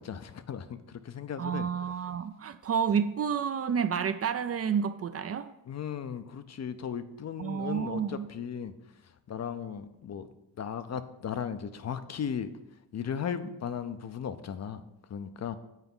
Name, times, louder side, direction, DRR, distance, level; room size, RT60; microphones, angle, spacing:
voice 1, 0.0-1.7 5.7-8.7 9.3-10.3 10.6-12.5 12.9-14.8 15.1-15.6, left 8 dB, 45° left, 11 dB, 0.6 m, -36 dB
voice 2, 1.4-5.5 7.4-8.3, right 7 dB, 40° right, 11 dB, 0.4 m, -30 dB
8.2 x 4.8 x 5.5 m, 0.88 s
cardioid pair, 115°, 37 cm